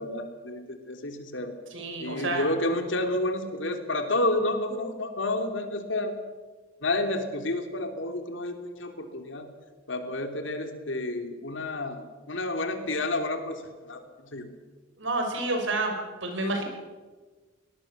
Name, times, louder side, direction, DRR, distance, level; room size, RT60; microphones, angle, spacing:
voice 1, 0.0-1.5 2.0-6.1 6.8-9.5 9.9-14.5, left 2 dB, 70° left, 6 dB, 3.1 m, -30 dB
voice 2, 1.7-2.5 15.0-16.0 16.2-16.6, right 2 dB, 70° right, 4 dB, 5.5 m, -29 dB
22.5 x 19.5 x 7.3 m, 1.3 s
head